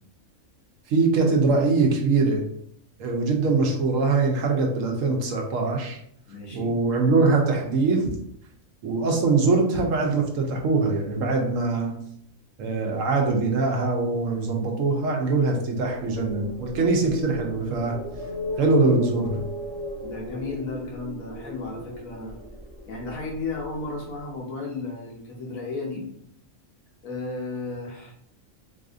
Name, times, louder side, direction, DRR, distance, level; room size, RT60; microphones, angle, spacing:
voice 1, 0.9-2.4 3.0-6.0 6.5-8.1 8.8-12.0 12.6-18.0 18.6-19.4, right 3 dB, 70° right, 1 dB, 1.0 m, -22 dB
voice 2, 6.3-6.8 20.0-22.3 22.9-26.0 27.0-28.1, left 3 dB, 80° left, -2 dB, 1.3 m, -34 dB
sound 1, 15.8-23.8, left 1 dB, 40° left, 1.5 m, -37 dB
4.0 x 2.5 x 2.4 m, 0.67 s
omnidirectional pair, 1.4 m